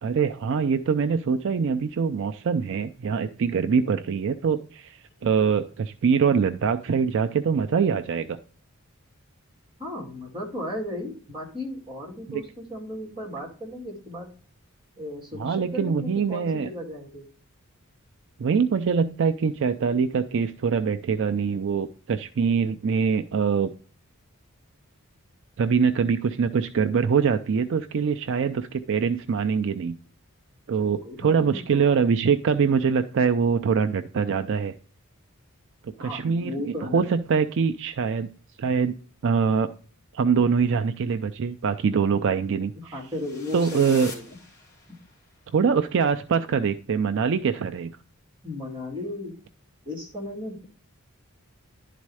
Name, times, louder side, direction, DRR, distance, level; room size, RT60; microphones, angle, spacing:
voice 1, 0.0-8.4 12.3-12.4 15.4-16.7 18.4-23.7 25.6-29.9 30.7-34.7 36.0-36.5 36.8-38.3 38.6-38.9 39.2-39.7 40.1-42.9 43.5-44.1 45.5-47.9, right 6 dB, 55° right, 8 dB, 0.4 m, -24 dB
voice 2, 9.8-14.3 15.0-17.3 30.8-32.0 36.0-37.1 42.9-44.4 48.4-49.4 49.9-50.6, left 1 dB, 25° right, -2 dB, 2.4 m, -35 dB
sound 1, 43.0-45.2, left 3 dB, 15° left, 2.6 m, -43 dB
11.5 x 4.2 x 4.8 m, 0.42 s
head